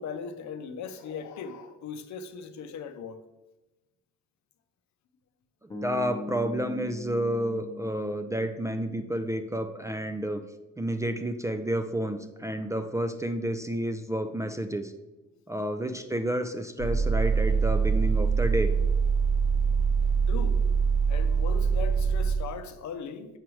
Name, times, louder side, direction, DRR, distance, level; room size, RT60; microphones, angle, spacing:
voice 1, 0.0-3.2 20.3-20.6 21.1-23.4, left 6 dB, 70° left, 0.6 m, -38 dB
voice 2, 5.6-10.4 10.8-14.9 15.5-18.7, right 1 dB, 10° right, 0.4 m, -30 dB
sound 1, 5.7-9.9, left 3 dB, 15° left, 0.9 m, -41 dB
sound 2, 16.8-22.3, right 5 dB, 90° right, 1.1 m, -24 dB
7.2 x 4.9 x 3.0 m
cardioid pair, 90°, 30 cm